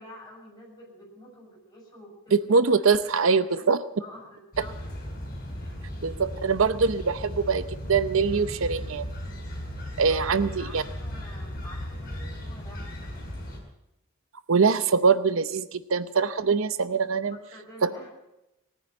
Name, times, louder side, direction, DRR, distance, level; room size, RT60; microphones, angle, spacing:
voice 1, 0.0-2.5 3.0-3.6 4.0-4.7 5.6-5.9 10.1-13.1 17.2-18.1, left 1 dB, 20° left, -3 dB, 6.7 m, -48 dB
voice 2, 2.5-3.8 6.0-9.1 10.0-10.8 14.5-17.3 17.8-17.9, right 5 dB, 80° right, 14 dB, 0.7 m, -23 dB
sound 1, 4.5-13.6, equal, 40° left, 5.6 m, -36 dB
19.0 x 9.8 x 7.8 m, 0.92 s
head